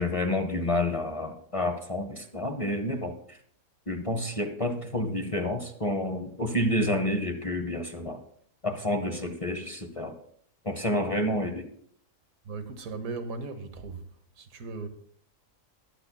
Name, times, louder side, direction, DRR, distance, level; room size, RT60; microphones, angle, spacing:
voice 1, 0.0-3.4 3.9-8.2 8.6-10.2 10.6-11.7, left 1 dB, 30° left, 0.8 m, -29 dB
voice 2, 12.4-14.1 14.4-14.9, right 3 dB, 80° right, 1.5 m, -37 dB
22.5 x 8.6 x 2.3 m
omnidirectional pair, 1.4 m